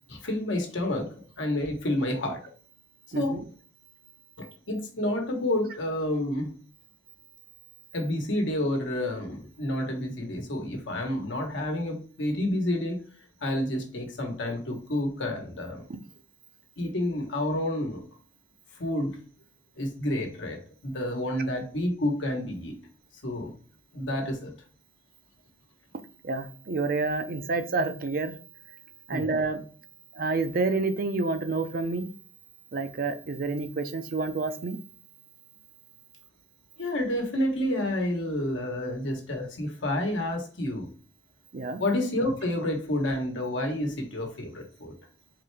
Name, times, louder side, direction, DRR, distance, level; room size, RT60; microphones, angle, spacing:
voice 1, 0.1-2.4 3.1-3.4 4.4-6.5 7.9-13.0 13.4-15.8 16.8-18.0 18.8-19.1 19.8-22.8 23.2-23.5 23.9-24.5 29.1-29.3 36.8-40.9 41.8-44.9, left 1 dB, 80° left, 3 dB, 1.1 m, -29 dB
voice 2, 3.1-3.4 26.2-28.3 29.1-29.6 30.1-32.1 32.7-34.8 41.5-41.8, right 3 dB, 50° right, 9 dB, 0.5 m, -28 dB
3.8 x 3.2 x 3.3 m, 0.43 s
head